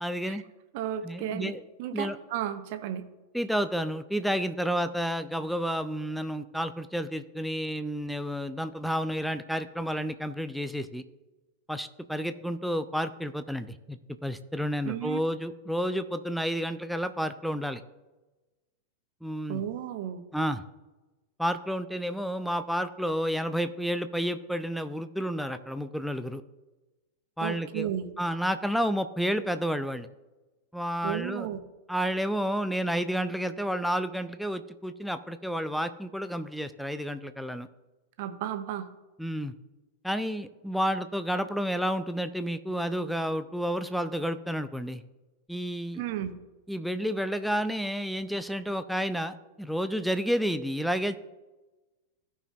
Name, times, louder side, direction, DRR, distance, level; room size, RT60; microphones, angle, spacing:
voice 1, 0.0-0.4 1.0-1.6 1.9-2.2 3.3-11.0 11.7-17.8 19.2-19.6 20.3-20.6 21.4-26.4 27.4-27.9 28.2-30.1 30.7-31.5 31.9-37.7 39.2-39.5 40.0-45.0 45.5-46.0 46.7-51.1, equal, ahead, 10 dB, 0.5 m, -30 dB
voice 2, 0.7-1.5 1.8-3.0 14.8-15.2 19.5-20.2 27.4-28.1 31.0-31.6 38.2-38.9 45.9-46.4, right 10 dB, 50° right, 10 dB, 0.8 m, -33 dB
16.0 x 5.7 x 2.4 m, 1.1 s
figure-of-eight pair, 90°, 0 cm